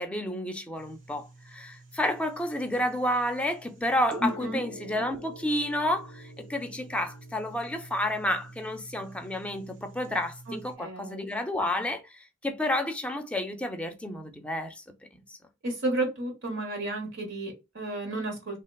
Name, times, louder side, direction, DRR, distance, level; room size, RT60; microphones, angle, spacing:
voice 1, 0.0-14.8 15.3-15.4, left 1 dB, 5° left, 0.4 m, -30 dB
sound 1, 0.8-10.8, right 1 dB, 45° right, 0.6 m, -47 dB
voice 2, 4.2-4.6 10.5-11.4 15.6-18.6, right 2 dB, 75° right, 1.0 m, -32 dB
3.0 x 2.1 x 2.2 m
head